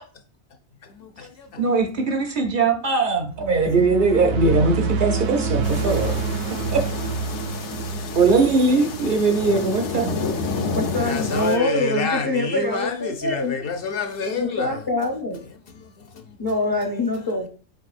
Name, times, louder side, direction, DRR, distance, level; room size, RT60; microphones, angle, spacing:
voice 1, 1.0-1.6 6.4-6.6 11.0-14.8, left 5 dB, 65° left, 0.7 m, -28 dB
voice 2, 1.6-6.2 6.7-6.8 8.1-10.1, right 3 dB, 55° right, 0.7 m, -20 dB
sound 1, 3.3-9.9, right 4 dB, 75° right, 0.9 m, -28 dB
sound 2, 5.6-11.6, left 4 dB, 85° left, 1.0 m, -30 dB
voice 3, 10.7-13.6 14.4-15.4 16.4-17.5, left 2 dB, 30° left, 0.5 m, -24 dB
4.6 x 4.1 x 2.4 m
omnidirectional pair, 1.2 m